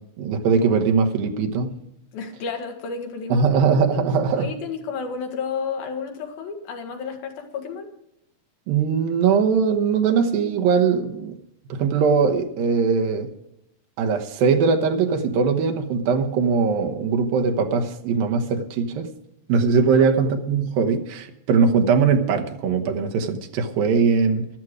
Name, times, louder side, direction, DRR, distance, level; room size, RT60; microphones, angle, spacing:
voice 1, 0.2-1.8 3.3-4.5 8.7-11.4 11.7-13.3 14.0-19.1 19.5-24.5, right 5 dB, 80° right, 4 dB, 2.9 m, -21 dB
voice 2, 2.1-3.5 4.4-7.9 19.9-20.1, left 5 dB, 85° left, 3 dB, 3.6 m, -31 dB
14.0 x 12.5 x 4.8 m, 0.82 s
omnidirectional pair, 4.1 m